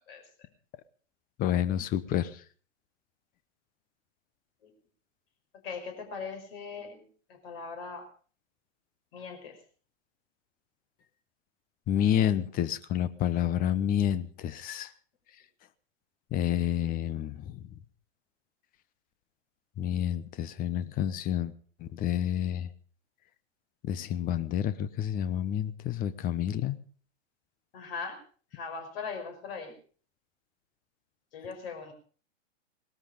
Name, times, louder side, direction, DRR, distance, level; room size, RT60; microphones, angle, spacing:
voice 1, 1.4-2.4 11.9-14.9 16.3-17.7 19.8-21.5 21.8-22.7 23.8-26.8, left 10 dB, 25° left, 16 dB, 1.0 m, -29 dB
voice 2, 5.6-7.0 7.3-8.1 9.1-9.6 27.7-28.2 28.5-29.7 31.3-31.9, left 5 dB, 50° left, 5 dB, 5.6 m, -39 dB
19.5 x 13.0 x 5.2 m, 0.42 s
figure-of-eight pair, 110°, 37 cm